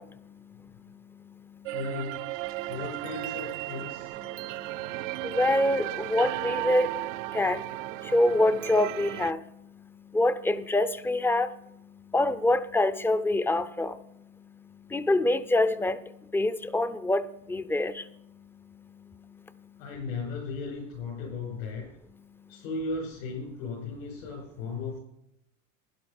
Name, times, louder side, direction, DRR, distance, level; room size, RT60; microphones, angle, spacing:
sound 1, 1.6-9.3, right 20 dB, 65° right, 0.5 m, -35 dB
voice 1, 1.7-2.4 2.7-4.1 19.8-21.9 22.5-25.0, left 3 dB, 80° left, 5.7 m, -36 dB
voice 2, 5.4-6.9 7.3-7.6 8.1-9.4 10.1-11.5 12.1-13.9 14.9-16.0 16.3-17.2 17.5-17.9, left 1 dB, 5° left, 0.4 m, -25 dB
12.0 x 11.0 x 5.4 m
supercardioid pair, 110°, 40 cm